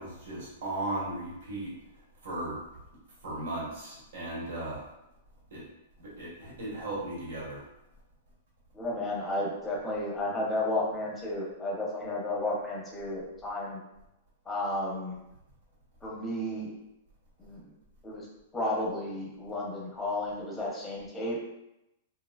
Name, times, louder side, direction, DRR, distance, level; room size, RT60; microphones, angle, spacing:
voice 1, 0.0-1.7 2.2-2.6 3.2-4.9 5.5-5.6 6.0-7.6, right 1 dB, 70° right, -6 dB, 1.4 m, -36 dB
voice 2, 8.7-13.8 14.5-15.2 16.0-16.7 17.4-17.7 18.0-18.3 18.5-21.4, left 1 dB, 10° left, -3 dB, 0.8 m, -32 dB
3.0 x 2.8 x 2.4 m, 0.89 s
hypercardioid pair, 150°, 0 cm